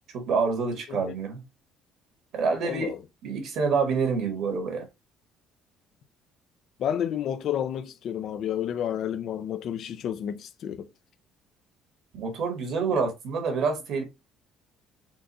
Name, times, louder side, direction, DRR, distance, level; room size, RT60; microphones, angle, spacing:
voice 1, 0.1-1.4 2.3-2.9 3.2-4.9 12.1-14.0, right 5 dB, 55° right, 1.8 m, -27 dB
voice 2, 2.6-3.0 6.8-10.9 12.9-13.0, left 9 dB, 50° left, 0.5 m, -30 dB
4.5 x 2.5 x 4.2 m
cardioid pair, 155°, 0 cm